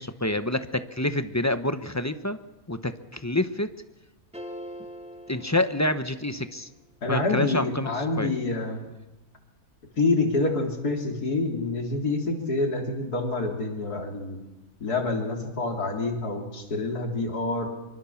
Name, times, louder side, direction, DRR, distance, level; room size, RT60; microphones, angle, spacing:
voice 1, 0.0-2.4 2.7-3.7 5.3-6.7 7.1-7.9 8.2-8.3, left 1 dB, 15° left, 10 dB, 0.8 m, -27 dB
sound 1, 4.3-6.6, equal, 5° right, 2.1 m, -42 dB
voice 2, 7.0-8.8 10.0-14.4 14.8-17.7, left 3 dB, 80° left, 2 dB, 3.8 m, -27 dB
24.5 x 24.0 x 7.2 m, 1.0 s
omnidirectional pair, 1.6 m